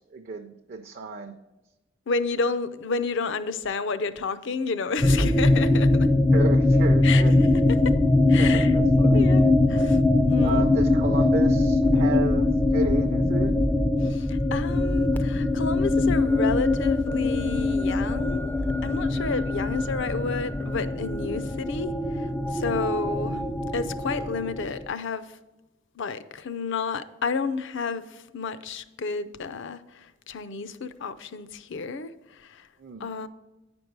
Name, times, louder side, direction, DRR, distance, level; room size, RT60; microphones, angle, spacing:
voice 1, 0.1-1.4 6.3-7.4 8.4-9.3 10.4-13.6 23.1-23.2 32.8-33.1, right 3 dB, 45° right, 0.5 m, -32 dB
voice 2, 2.1-6.1 7.0-7.2 7.7-7.9 8.3-8.7 9.1-10.0 10.3-10.7 11.9-12.2 14.0-18.5 18.8-21.9 22.5-25.3 26.0-32.1 32.5-32.6 33.0-33.3, left 4 dB, 65° left, 0.5 m, -30 dB
sound 1, 5.0-24.9, left 2 dB, 10° left, 0.4 m, -22 dB
9.5 x 5.3 x 4.6 m
head